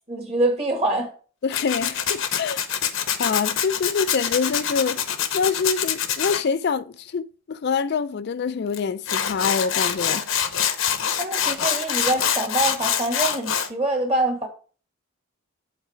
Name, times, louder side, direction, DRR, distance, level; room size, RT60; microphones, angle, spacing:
voice 1, 0.1-1.1 11.1-14.5, right 1 dB, 30° right, 1.7 m, -25 dB
voice 2, 1.4-2.6 3.2-10.3, left 5 dB, 50° left, 0.4 m, -25 dB
Tools, 1.5-6.4 8.7-8.8 9.1-13.7, left 8 dB, 70° left, 0.8 m, -25 dB
8.1 x 4.0 x 4.9 m
head